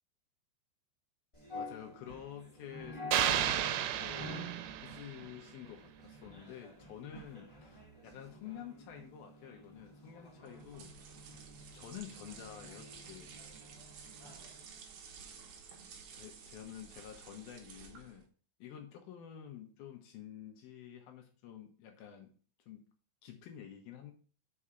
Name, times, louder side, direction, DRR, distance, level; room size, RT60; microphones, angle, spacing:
sound 1, 1.3-14.6, left 1 dB, 50° left, 0.3 m, -49 dB
voice 1, 1.5-4.4 4.8-10.9 11.4-11.5 11.7-13.3 16.1-18.3 18.6-22.3 22.7-22.8 23.2-24.1, left 10 dB, 75° left, 3 dB, 2.3 m, -49 dB
sound 2, 3.1-5.3, right 11 dB, 90° right, 3.0 m, -32 dB
sound 3, 10.5-18.3, right 6 dB, 70° right, 2.1 m, -53 dB
6.2 x 4.9 x 5.7 m, 0.41 s
omnidirectional pair, 5.3 m